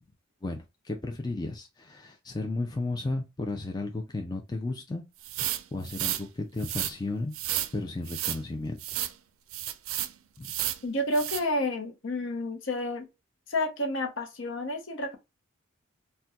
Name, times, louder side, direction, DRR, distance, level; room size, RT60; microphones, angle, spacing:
voice 1, 0.4-5.0 5.4-7.3 7.7-9.0 10.4-10.5, left 2 dB, 20° left, 0.4 m, -34 dB
sound 1, 5.2-6.2 6.6-6.9 7.3-7.7 8.1-8.4 8.8-9.1 9.5-10.1 10.4-10.8 11.1-11.4, right 13 dB, 75° right, 0.4 m, -32 dB
voice 2, 10.8-13.1 13.5-15.2, left 1 dB, 60° left, 0.8 m, -30 dB
4.0 x 2.2 x 2.3 m
head